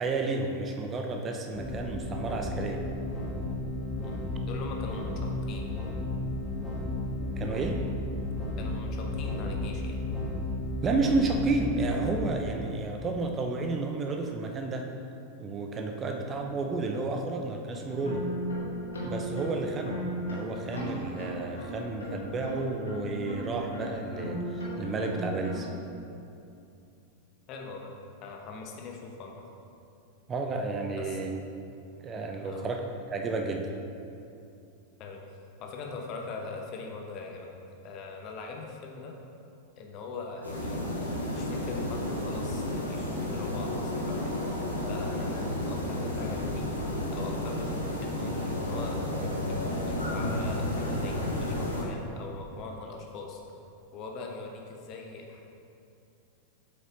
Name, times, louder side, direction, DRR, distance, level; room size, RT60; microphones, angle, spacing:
voice 1, 0.0-2.8 7.2-7.8 10.8-14.9 15.4-18.3 19.0-25.7 30.3-31.3 32.0-32.8 33.1-33.7, right 3 dB, 25° right, 3 dB, 0.6 m, -31 dB
sound 1, 1.5-12.4, left 2 dB, 10° left, 1.2 m, -33 dB
voice 2, 4.0-5.8 8.6-10.0 16.1-16.3 27.5-27.9 28.2-29.4 31.0-31.2 32.4-32.7 35.0-35.2 35.6-37.5 37.8-39.2 39.8-44.4 44.9-46.7 47.1-53.4 53.9-55.4, left 4 dB, 40° left, 1 dB, 1.0 m, -41 dB
sound 2, 17.8-25.8, equal, 70° left, 1.7 m, -36 dB
sound 3, 40.4-51.8, left 1 dB, 85° left, 1.5 m, -32 dB
7.5 x 5.5 x 3.9 m, 2.6 s
figure-of-eight pair, 90°, 0 cm